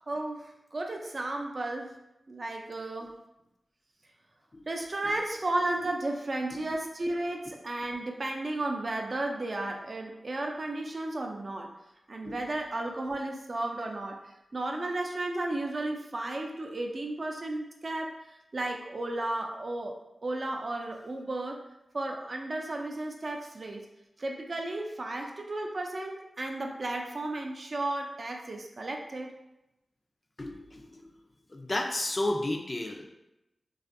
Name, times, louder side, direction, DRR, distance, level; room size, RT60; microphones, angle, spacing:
voice 1, 0.0-2.0 2.3-3.1 4.7-11.7 12.1-14.2 14.5-18.2 18.5-21.6 21.9-23.9 24.2-29.3, right 2 dB, 55° right, 2 dB, 0.4 m, -34 dB
voice 2, 30.4-31.0 31.5-33.1, left 1 dB, 40° left, 2 dB, 0.4 m, -32 dB
2.5 x 2.3 x 2.5 m, 0.91 s
cardioid pair, 55°, 0 cm